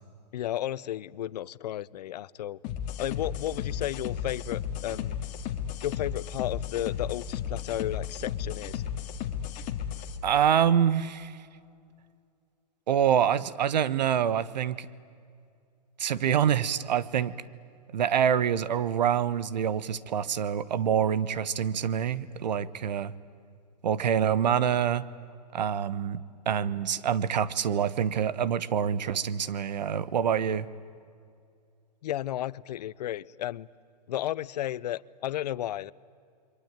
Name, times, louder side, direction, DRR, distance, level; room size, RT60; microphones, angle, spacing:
voice 1, 0.3-2.6 3.0-5.2 5.8-8.8 32.0-33.7 34.1-35.9, left 12 dB, 75° left, 20 dB, 0.7 m, -33 dB
sound 1, 2.6-10.2, left 8 dB, 35° left, 2.0 m, -34 dB
voice 2, 10.2-11.3 12.9-14.9 16.0-17.3 17.9-23.1 23.8-25.0 25.5-30.7, right 8 dB, 85° right, 18 dB, 1.2 m, -26 dB
28.0 x 23.5 x 9.1 m, 2.3 s
hypercardioid pair, 140°, 21 cm